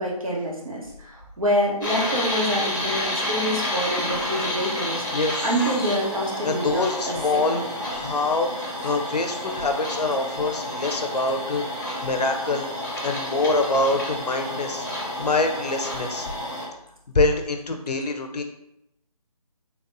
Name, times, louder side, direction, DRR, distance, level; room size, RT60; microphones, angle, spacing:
voice 1, 0.0-7.1 7.5-7.6, equal, 60° right, -3 dB, 1.1 m, -27 dB
sound 1, 1.8-16.7, left 1 dB, 30° left, 0.7 m, -30 dB
voice 2, 5.1-5.9 6.4-7.6 7.9-11.6 12.0-12.7 13.0-14.9 15.2-16.3 17.1-18.4, left 3 dB, 85° left, 5 dB, 0.6 m, -25 dB
3.4 x 2.9 x 2.5 m, 0.83 s
figure-of-eight pair, 175°, 20 cm